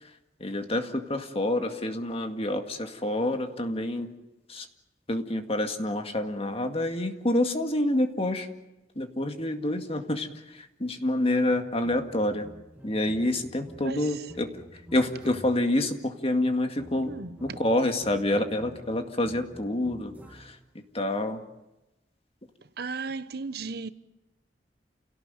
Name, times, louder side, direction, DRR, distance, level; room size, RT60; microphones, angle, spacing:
voice 1, 0.4-4.1 4.5-4.7 5.1-8.5 9.0-12.5 12.8-17.1 17.4-21.4, left 1 dB, 35° left, 2.1 m, -28 dB
sound 1, 11.5-15.8 16.4-20.7, equal, 10° right, 2.3 m, -50 dB
voice 2, 13.8-14.3 17.0-17.6 22.8-23.9, right 4 dB, 65° right, 1.0 m, -35 dB
29.0 x 18.0 x 9.1 m
head